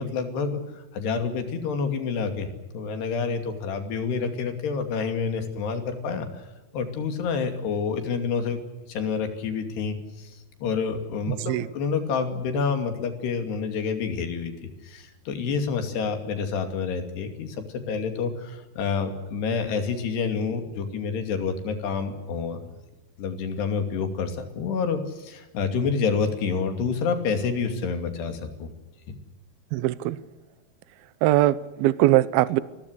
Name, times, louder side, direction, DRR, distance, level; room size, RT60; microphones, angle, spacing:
voice 1, 0.0-2.5 2.7-6.4 6.7-8.6 8.9-22.6 23.2-28.7 29.1-29.2, left 5 dB, 80° left, 7 dB, 4.7 m, -28 dB
voice 2, 11.3-11.7 29.7-30.2 31.2-32.6, right 15 dB, 75° right, 16 dB, 2.6 m, -21 dB
28.5 x 21.5 x 6.6 m, 1.1 s
omnidirectional pair, 4.8 m